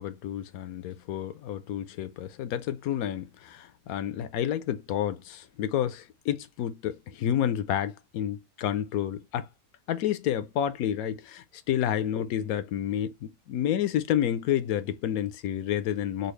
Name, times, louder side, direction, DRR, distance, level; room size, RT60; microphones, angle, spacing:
voice 1, 0.0-9.5 9.9-16.3, left 10 dB, 70° left, 0.9 m, -30 dB
4.1 x 2.3 x 3.1 m
omnidirectional pair, 1.8 m